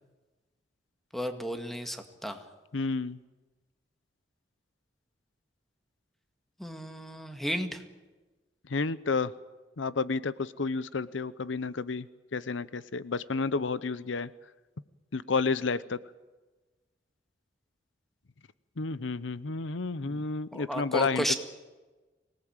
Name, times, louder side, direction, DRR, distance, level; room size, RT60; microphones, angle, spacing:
voice 1, 1.1-2.4 6.6-7.8 20.0-20.2 20.5-21.4, equal, ahead, 6 dB, 2.0 m, -33 dB
voice 2, 2.7-3.2 8.7-9.3 9.8-12.1 12.3-14.3 15.1-16.0 18.8-21.3, left 4 dB, 80° left, 17 dB, 0.7 m, -31 dB
24.5 x 18.5 x 8.9 m, 1.2 s
head